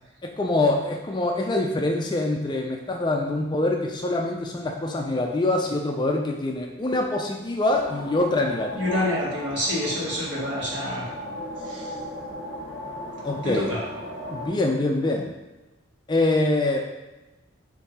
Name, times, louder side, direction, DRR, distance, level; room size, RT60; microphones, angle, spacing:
voice 1, 0.2-9.0 13.2-13.7 14.3-15.3 16.1-16.8, left 2 dB, 20° left, 1 dB, 0.3 m, -24 dB
sound 1, 7.7-14.5, left 1 dB, 55° left, 1.0 m, -37 dB
voice 2, 8.7-11.1 11.6-11.9 13.4-13.8, left 1 dB, 60° right, -5 dB, 1.3 m, -27 dB
3.7 x 2.6 x 4.1 m, 1.1 s
head